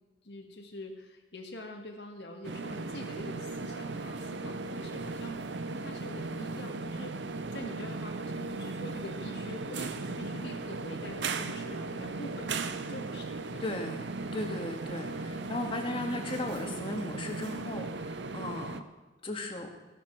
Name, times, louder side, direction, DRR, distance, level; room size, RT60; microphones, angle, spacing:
voice 1, 0.2-7.2 7.5-13.6, left 1 dB, 65° left, 2 dB, 1.7 m, -45 dB
sound 1, 2.4-18.8, right 3 dB, 75° right, 0.8 m, -37 dB
voice 2, 13.6-18.8 19.2-19.7, left 2 dB, 30° left, 3 dB, 1.8 m, -36 dB
15.0 x 12.0 x 4.6 m, 1.2 s
head